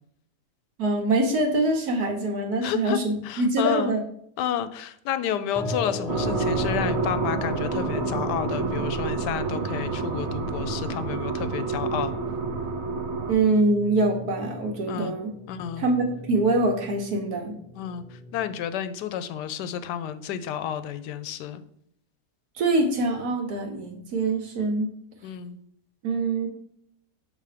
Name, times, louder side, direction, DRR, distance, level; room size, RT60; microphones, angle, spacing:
voice 1, 0.8-4.0 13.3-15.3 15.8-17.5 22.6-24.9 26.0-26.5, right 2 dB, 70° right, 3 dB, 1.6 m, -24 dB
voice 2, 2.6-3.0 3.2-4.0 4.4-12.1 14.9-15.2 15.5-15.9 17.8-21.6 25.2-25.6, left 10 dB, 85° left, 12 dB, 1.2 m, -31 dB
sound 1, 5.5-18.5, left 1 dB, ahead, 0.9 m, -37 dB
sound 2, 6.1-13.3, right 4 dB, 50° right, 0.9 m, -29 dB
6.8 x 3.5 x 4.9 m, 0.69 s
omnidirectional pair, 1.8 m